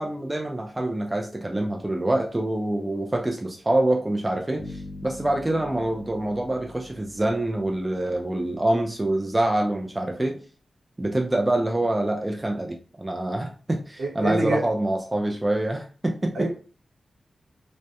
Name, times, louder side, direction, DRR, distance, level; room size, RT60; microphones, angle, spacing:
voice 1, 0.0-10.4 11.0-16.5, right 1 dB, 20° right, 1 dB, 0.3 m, -26 dB
sound 1, 4.6-8.6, left 2 dB, 55° left, 0.4 m, -42 dB
voice 2, 14.0-14.6 16.3-16.5, right 2 dB, 70° right, -1 dB, 0.9 m, -26 dB
2.2 x 2.0 x 2.7 m, 0.38 s
wide cardioid pair, 90°, 0 cm